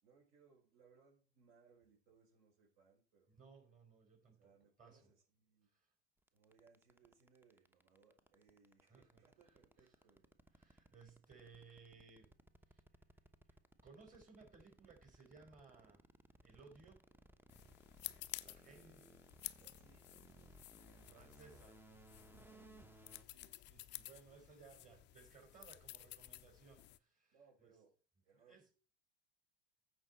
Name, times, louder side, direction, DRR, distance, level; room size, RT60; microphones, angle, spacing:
voice 1, 0.0-3.4 4.4-5.7 6.3-10.3 18.6-21.6 21.9-22.0 22.2-22.9 27.3-27.9 28.2-28.6, right 5 dB, 50° right, 5.1 m, -70 dB
voice 2, 3.3-4.5 4.8-5.1 5.6-5.9 8.9-9.6 9.9-10.0 10.5-12.3 12.7-12.8 13.8-16.1 16.4-17.1 18.4-19.0 21.1-21.8 23.3-27.3 27.6-27.7 28.3-28.7, right 5 dB, 25° right, 4.0 m, -62 dB
sound 1, 6.3-23.2, right 2 dB, 5° right, 0.9 m, -63 dB
sound 2, 17.5-27.0, left 16 dB, 35° left, 0.6 m, -53 dB
15.0 x 5.4 x 4.2 m
figure-of-eight pair, 85°, 33 cm